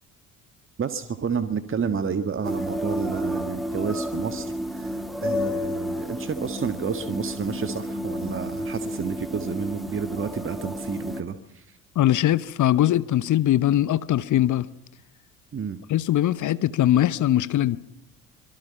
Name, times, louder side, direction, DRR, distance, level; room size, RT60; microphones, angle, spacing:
voice 1, 0.8-11.8 15.5-15.8, right 6 dB, 30° right, 10 dB, 1.8 m, -30 dB
sound 1, 2.4-11.2, equal, ahead, 2.3 m, -31 dB
voice 2, 11.9-14.7 15.9-17.8, left 13 dB, 45° left, 17 dB, 1.1 m, -21 dB
26.0 x 23.0 x 5.7 m, 0.80 s
figure-of-eight pair, 55°, 41 cm